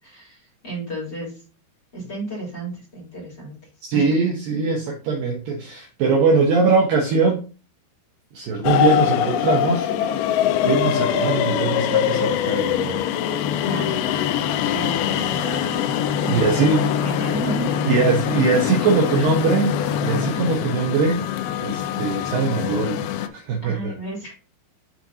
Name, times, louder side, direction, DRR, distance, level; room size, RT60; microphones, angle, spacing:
voice 1, 0.0-1.4 1.9-3.5 3.8-4.0 13.7-14.3 14.7-18.0 19.1-19.3 23.6-24.3, right 2 dB, 25° left, -4 dB, 3.6 m, -33 dB
voice 2, 3.9-7.5 8.3-13.1 16.3-16.8 17.8-21.3 21.6-23.9, right 4 dB, 70° right, 1 dB, 2.3 m, -22 dB
sound 1, 8.6-23.3, left 9 dB, 80° left, 2.3 m, -23 dB
12.0 x 4.4 x 2.8 m, 0.34 s
omnidirectional pair, 5.0 m